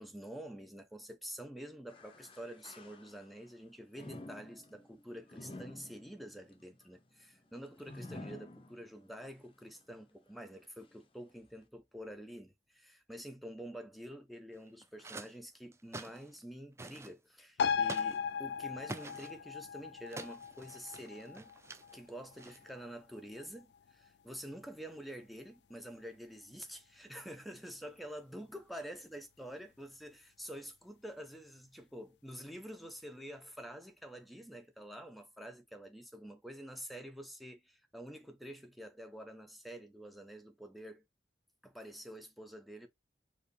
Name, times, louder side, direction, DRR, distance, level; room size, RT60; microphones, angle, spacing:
voice 1, 0.0-21.6 21.9-41.0 41.6-42.9, equal, ahead, 0.9 m, -48 dB
sound 1, 1.9-3.5 3.9-9.2 9.7-9.8 10.6-10.7, left 1 dB, 30° left, 0.7 m, -51 dB
sound 2, 14.5-15.3 15.7-16.4 16.8-17.1 17.8-18.2 18.8-19.3 20.1-22.0 22.4-22.8, right 2 dB, 15° right, 0.4 m, -47 dB
sound 3, 17.6-24.5 24.9-25.0, left 6 dB, 80° left, 0.4 m, -38 dB
4.6 x 2.8 x 3.2 m
head